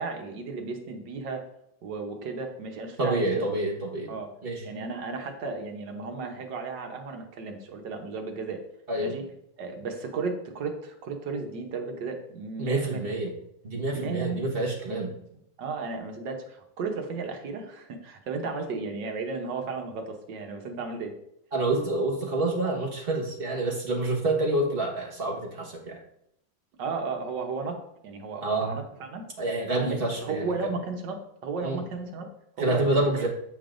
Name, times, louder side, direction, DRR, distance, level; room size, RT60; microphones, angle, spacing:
voice 1, 0.0-1.4 1.8-3.5 4.1-4.3 4.6-8.6 9.0-9.2 9.6-13.0 13.9-14.4 14.9-15.1 15.6-21.1 26.8-27.8 28.0-29.3 29.8-32.3 32.6-33.3, right 4 dB, 75° right, 4 dB, 1.6 m, -34 dB
voice 2, 3.0-4.1 4.4-4.6 8.9-9.1 12.6-13.3 13.6-15.1 21.5-26.0 28.4-28.8 29.4-30.7 31.6-31.8 32.6-33.3, right 2 dB, 35° right, -2 dB, 1.3 m, -27 dB
8.7 x 5.2 x 2.5 m, 0.77 s
omnidirectional pair, 1.9 m